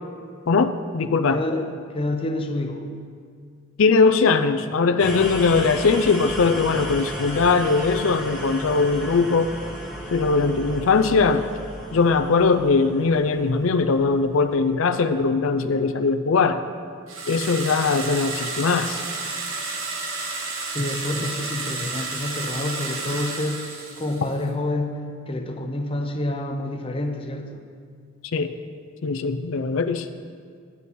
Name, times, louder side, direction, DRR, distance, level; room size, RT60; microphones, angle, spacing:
voice 1, 0.5-1.4 3.8-9.6 10.1-11.4 11.9-16.6 17.3-19.0 28.3-28.5 29.0-30.1, left 4 dB, 75° left, 8 dB, 0.5 m, -20 dB
voice 2, 1.3-1.7 1.9-2.9 20.7-23.7 24.0-27.6, left 1 dB, 25° left, 4 dB, 0.7 m, -28 dB
sound 1, 5.0-14.7, equal, 5° right, 1.9 m, -34 dB
sound 2, 17.1-24.4, right 3 dB, 70° right, 1.3 m, -31 dB
12.5 x 9.7 x 4.2 m, 2.1 s
head